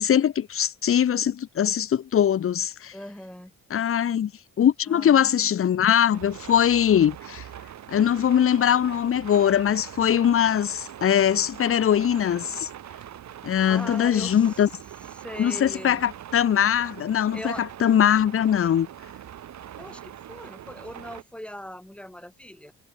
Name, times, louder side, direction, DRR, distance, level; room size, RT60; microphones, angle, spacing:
voice 1, 0.0-2.9 3.7-4.3 4.6-7.4 7.9-12.7 13.4-14.7 15.4-18.9, left 9 dB, 45° left, 1.0 m, -21 dB
voice 2, 2.9-3.5 4.9-5.5 13.7-14.6 15.1-16.0 17.3-17.6 19.8-22.7, equal, 5° left, 6.4 m, -40 dB
sound 1, 6.1-21.2, right 11 dB, 65° right, 3.1 m, -42 dB
cardioid pair, 90°, 30 cm